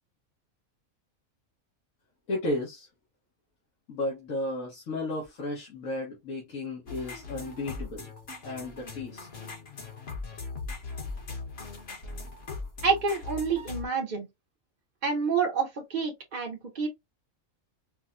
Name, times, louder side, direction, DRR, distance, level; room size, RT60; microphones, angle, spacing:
voice 1, 2.3-2.9 3.9-8.1 8.4-9.3, left 2 dB, 75° left, 1.7 m, -33 dB
sound 1, 6.9-13.9, left 4 dB, 50° left, 1.4 m, -40 dB
voice 2, 12.8-14.3 15.0-16.9, right 5 dB, 40° right, 0.8 m, -28 dB
5.2 x 2.2 x 2.6 m
omnidirectional pair, 1.4 m